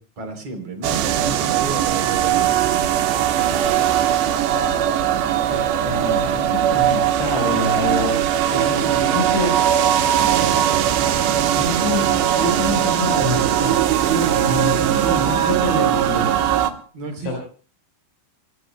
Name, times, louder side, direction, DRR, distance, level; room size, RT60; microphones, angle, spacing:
voice 1, 0.2-2.7 16.9-17.3, right 3 dB, 35° right, 5 dB, 4.2 m, -32 dB
sound 1, 0.8-16.7, right 10 dB, 75° right, 3.2 m, -19 dB
voice 2, 4.3-4.8 5.5-8.1 8.5-9.6 11.6-13.8 14.1-16.3 17.2-17.3, left 1 dB, 70° left, 0 dB, 7.1 m, -26 dB
27.5 x 21.0 x 2.2 m, 0.42 s
omnidirectional pair, 5.2 m